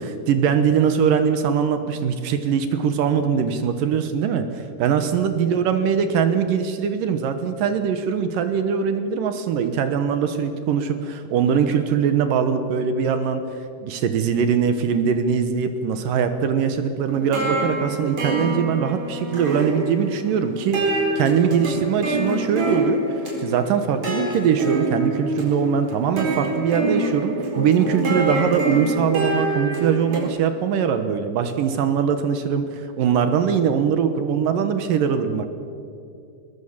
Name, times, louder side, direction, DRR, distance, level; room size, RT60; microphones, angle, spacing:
voice 1, 0.0-13.4 13.8-23.0 23.4-35.5, right 7 dB, 70° right, 8 dB, 2.6 m, -22 dB
sound 1, 17.1-30.3, right 2 dB, 45° right, 5.4 m, -26 dB
21.0 x 20.5 x 7.3 m, 2.5 s
omnidirectional pair, 4.4 m